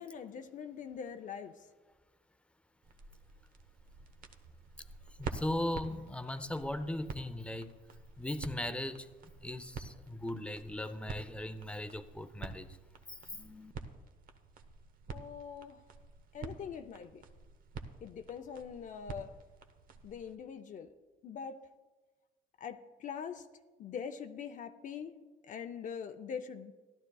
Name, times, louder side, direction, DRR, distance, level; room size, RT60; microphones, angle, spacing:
voice 1, 0.0-1.7 15.1-15.8 16.3-17.2 18.0-19.3 20.0-20.9 21.2-21.7 22.6-23.5 23.8-26.7, left 7 dB, 50° left, 7 dB, 0.6 m, -43 dB
sound 1, 2.8-20.4, right 5 dB, 55° right, 0.9 m, -48 dB
voice 2, 5.2-7.7 8.2-9.1 9.4-12.7 13.1-13.7, left 1 dB, 5° left, 11 dB, 0.5 m, -38 dB
16.0 x 11.5 x 2.3 m, 1.3 s
cardioid pair, 110°, 17 cm